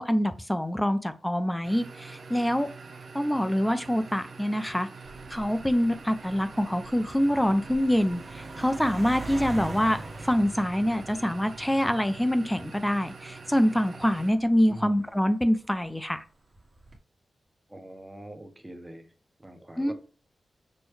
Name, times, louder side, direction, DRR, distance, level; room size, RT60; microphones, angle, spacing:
voice 1, 0.0-2.7 3.1-4.9 5.3-16.2 19.8-19.9, equal, 10° left, 10 dB, 0.5 m, -25 dB
sound 1, 1.6-14.3, right 4 dB, 70° right, 0.6 m, -45 dB
sound 2, 5.0-15.8 16.5-17.0, right 2 dB, 40° right, 1.4 m, -43 dB
voice 2, 14.7-15.1 17.7-19.1 19.4-19.9, right 1 dB, 15° right, 5 dB, 0.9 m, -43 dB
6.2 x 2.2 x 3.2 m, 0.40 s
cardioid pair, 65°, 0 cm